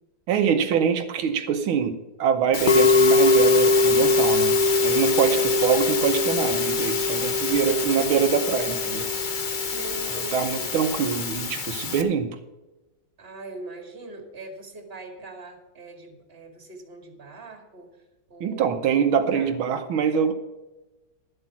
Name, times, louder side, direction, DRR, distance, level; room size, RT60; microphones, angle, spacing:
voice 1, 0.3-4.6 4.8-9.1 10.1-12.4 18.4-20.3, right 7 dB, 85° right, 6 dB, 1.7 m, -24 dB
Musical instrument, 2.5-12.0, left 3 dB, 60° left, 0.5 m, -22 dB
voice 2, 5.2-5.8 7.4-8.1 9.5-10.7 13.2-17.9 18.3-18.9 19.3-19.5, right 2 dB, 30° right, 3 dB, 2.3 m, -41 dB
12.0 x 8.0 x 5.9 m, 1.1 s
omnidirectional pair, 2.2 m